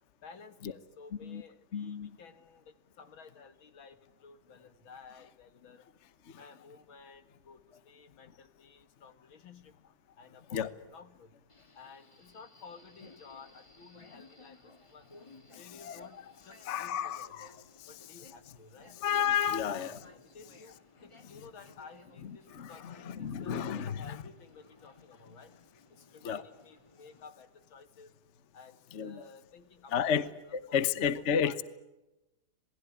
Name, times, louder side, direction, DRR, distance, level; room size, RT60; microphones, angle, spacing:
voice 1, 0.2-5.8 6.3-9.7 10.2-11.3 11.7-14.6 14.9-16.2 16.4-17.5 17.9-19.0 19.5-25.5 25.9-28.1 28.5-30.2 30.4-31.1 31.4-31.6, left 5 dB, 75° left, 10 dB, 2.6 m, -54 dB
voice 2, 1.7-2.1 10.5-10.7 15.8-16.1 16.6-17.5 19.0-20.0 22.5-24.2 26.2-26.4 28.9-29.3 29.9-30.3 30.7-31.6, left 8 dB, 40° left, 14 dB, 1.2 m, -31 dB
Subway metro underground, 11.5-27.3, left 2 dB, 15° left, 1.8 m, -59 dB
27.0 x 20.0 x 9.8 m, 1.0 s
omnidirectional pair, 2.2 m